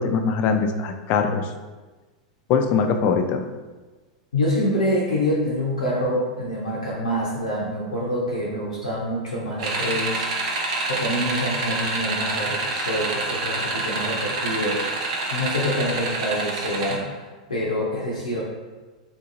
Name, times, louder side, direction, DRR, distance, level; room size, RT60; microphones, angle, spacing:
voice 1, 0.0-1.5 2.5-3.4, left 5 dB, 45° left, 6 dB, 0.4 m, -22 dB
voice 2, 4.3-10.3 10.6-14.8 15.3-18.4, equal, 85° left, -5 dB, 0.6 m, -26 dB
sound 1, 9.6-17.0, right 2 dB, 65° right, 0.7 m, -27 dB
3.7 x 2.7 x 2.5 m, 1.3 s
hypercardioid pair, 100°, 4 cm